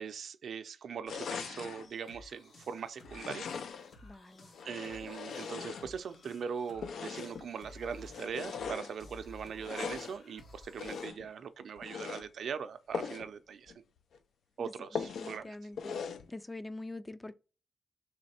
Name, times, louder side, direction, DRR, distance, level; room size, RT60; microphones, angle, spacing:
voice 1, 0.0-3.5 4.6-13.7 14.6-15.6, right 6 dB, 75° right, 0.4 m, -41 dB
sound 1, 1.1-1.9 3.0-4.0 4.5-6.2 6.8-7.5 8.1-8.9 9.6-10.2 10.8-11.3 11.8-12.3 12.9-13.3 13.7-13.8 14.1-14.2 14.9-15.4 15.8-16.3, left 6 dB, 90° left, 0.4 m, -40 dB
sound 2, 1.8-11.1, left 2 dB, 70° left, 1.3 m, -55 dB
voice 2, 4.0-4.6 14.6-15.9 16.3-17.3, left 2 dB, 15° left, 0.3 m, -45 dB
3.3 x 3.2 x 4.1 m
wide cardioid pair, 125°, 0 cm